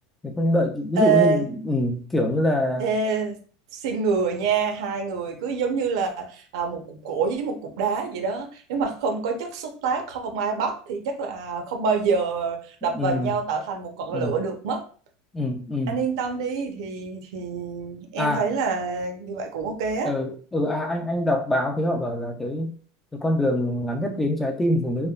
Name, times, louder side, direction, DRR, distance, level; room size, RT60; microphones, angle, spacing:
voice 1, 0.2-2.8 12.9-13.3 14.1-14.3 15.3-16.0 18.2-18.4 20.0-22.7 23.1-25.1, left 1 dB, 5° left, 3 dB, 0.3 m, -24 dB
voice 2, 1.0-1.5 2.8-3.4 3.7-14.8 15.9-20.1, right 5 dB, 70° right, 4 dB, 0.7 m, -26 dB
3.1 x 2.1 x 2.3 m, 0.41 s
supercardioid pair, 175°, 3 cm